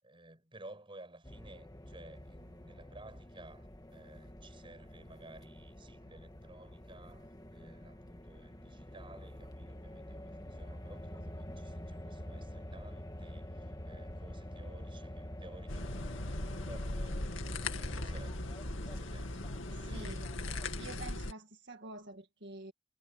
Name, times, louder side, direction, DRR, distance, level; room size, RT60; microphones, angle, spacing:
voice 1, 0.0-16.3 16.7-20.3, right 2 dB, 25° right, 6.6 m, -55 dB
sound 1, 1.2-21.1, equal, 20° left, 1.7 m, -47 dB
sound 2, 15.7-21.3, left 2 dB, 80° left, 2.3 m, -39 dB
voice 2, 19.7-20.3 20.8-22.7, right 2 dB, 60° right, 1.8 m, -48 dB
head